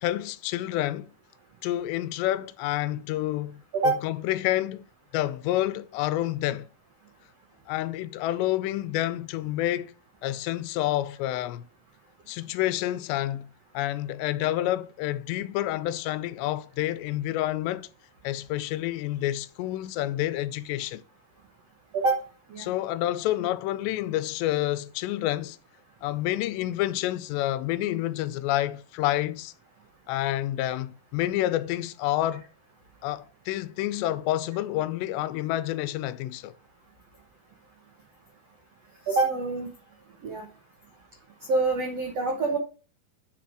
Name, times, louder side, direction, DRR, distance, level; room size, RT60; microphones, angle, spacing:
voice 1, 0.0-1.1 1.6-3.6 4.0-4.9 5.1-6.7 7.7-9.9 10.2-11.6 12.3-17.9 18.2-21.0 22.6-25.6 26.0-29.5 30.1-32.5 33.0-36.5, left 14 dB, 85° left, 2.7 m, -28 dB
voice 2, 21.9-22.2 22.5-22.7 39.1-39.7 40.2-40.5 41.5-42.6, right 3 dB, 80° right, 1.4 m, -25 dB
9.8 x 4.2 x 6.1 m
omnidirectional pair, 5.0 m